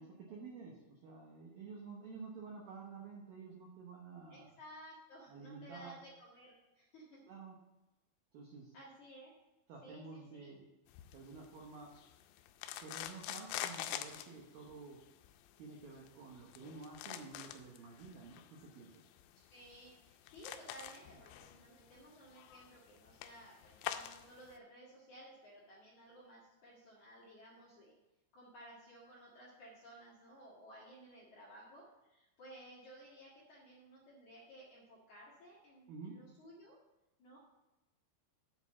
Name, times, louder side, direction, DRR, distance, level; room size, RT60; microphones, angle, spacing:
voice 1, 0.0-4.5 5.3-6.0 7.3-7.6 8.3-8.7 9.7-10.6 11.1-11.9 12.8-15.0 15.6-19.0 35.9-36.2, right 4 dB, 75° right, -2 dB, 2.1 m, -51 dB
voice 2, 4.3-7.2 8.7-9.3 9.8-10.5 19.4-28.0 28.3-36.8 37.2-37.4, right 1 dB, 55° left, -6 dB, 2.2 m, -56 dB
sound 1, 10.9-24.6, left 12 dB, 85° left, 2.9 m, -47 dB
7.9 x 4.7 x 7.0 m, 1.0 s
omnidirectional pair, 5.7 m